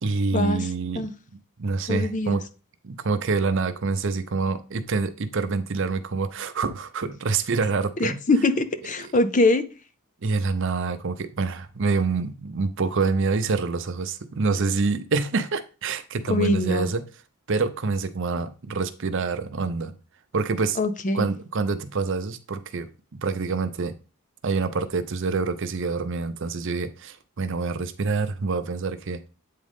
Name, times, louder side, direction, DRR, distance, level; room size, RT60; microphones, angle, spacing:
voice 1, 0.0-1.1 1.6-2.4 2.8-8.2 9.0-9.1 10.2-17.0 17.5-19.9 20.3-20.8 21.1-23.9 24.4-29.3, right 4 dB, 60° right, 0.6 m, -26 dB
voice 2, 1.9-2.4 8.0-9.6 16.3-16.9 20.8-21.3, left 2 dB, 35° left, 0.6 m, -23 dB
8.4 x 3.8 x 3.6 m
head